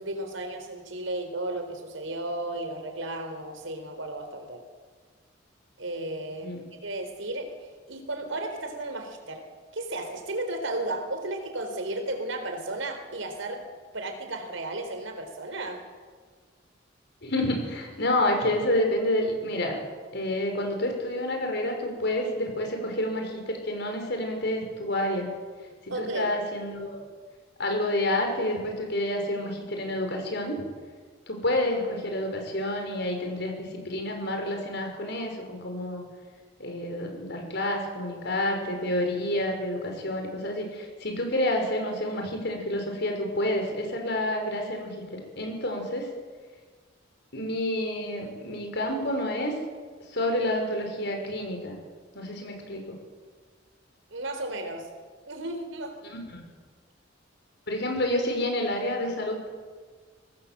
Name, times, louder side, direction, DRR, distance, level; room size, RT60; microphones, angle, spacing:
voice 1, 0.0-4.6 5.8-9.5 9.7-15.8 25.9-26.3 54.1-54.9 55.3-56.1, right 2 dB, 85° right, 5 dB, 4.2 m, -34 dB
voice 2, 17.2-19.8 20.1-25.3 26.0-27.0 27.6-30.6 31.3-36.1 36.6-46.1 47.3-49.5 50.1-51.8 52.1-53.0 56.1-56.4 57.7-59.5, left 1 dB, 60° left, 3 dB, 5.9 m, -29 dB
25.0 x 19.0 x 7.8 m, 1.5 s
head